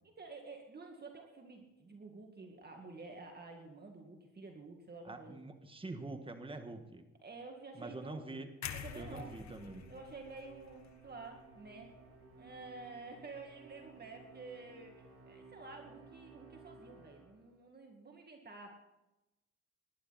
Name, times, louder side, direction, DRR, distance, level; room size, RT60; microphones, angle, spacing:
voice 1, 0.0-5.4 7.2-8.4 8.7-9.4 9.9-11.9 12.4-18.7, right 3 dB, 35° right, 2 dB, 2.2 m, -50 dB
voice 2, 5.0-7.0 7.7-8.5 8.9-10.0, right 2 dB, 15° right, 7 dB, 1.6 m, -45 dB
sound 1, 8.6-12.6 13.0-13.2, left 8 dB, 65° left, 1.3 m, -49 dB
Musical instrument, 9.0-17.5, right 3 dB, 55° right, 6.2 m, -57 dB
19.5 x 11.0 x 4.2 m, 0.98 s
cardioid pair, 90°, 30 cm